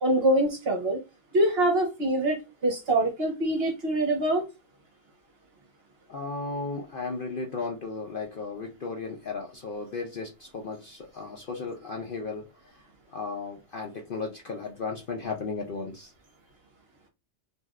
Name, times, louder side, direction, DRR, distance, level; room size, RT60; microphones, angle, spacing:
voice 1, 0.0-1.0 1.3-4.5, right 1 dB, 50° right, 1.0 m, -24 dB
voice 2, 6.1-12.8 13.1-16.1, left 4 dB, 55° left, 0.6 m, -35 dB
3.3 x 2.6 x 2.3 m
omnidirectional pair, 1.5 m